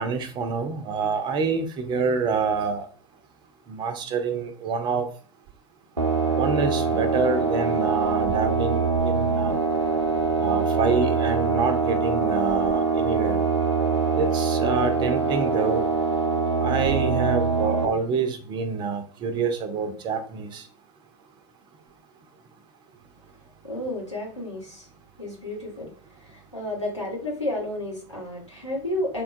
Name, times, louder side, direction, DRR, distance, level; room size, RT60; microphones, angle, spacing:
voice 1, 0.0-2.9 3.7-5.1 6.4-9.6 10.4-13.4 14.1-15.9 16.6-20.7, right 5 dB, 30° right, 0.6 m, -27 dB
sound 1, 6.0-17.9, right 4 dB, 85° right, 0.4 m, -24 dB
voice 2, 23.6-24.9 25.2-29.2, left 1 dB, 90° left, 1.1 m, -32 dB
3.5 x 2.2 x 2.5 m
figure-of-eight pair, 80°, 15 cm